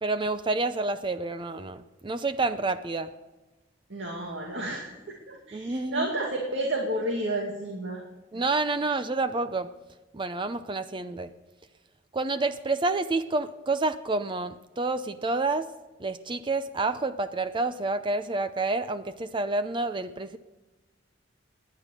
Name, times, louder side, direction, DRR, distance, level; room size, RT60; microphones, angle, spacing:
voice 1, 0.0-3.1 5.5-6.1 8.3-9.7 10.1-11.3 12.1-15.7 16.0-20.4, right 3 dB, 25° right, 11 dB, 0.6 m, -29 dB
voice 2, 3.9-8.0, right 1 dB, 75° right, 0 dB, 2.4 m, -31 dB
19.0 x 10.5 x 6.7 m, 1.1 s
head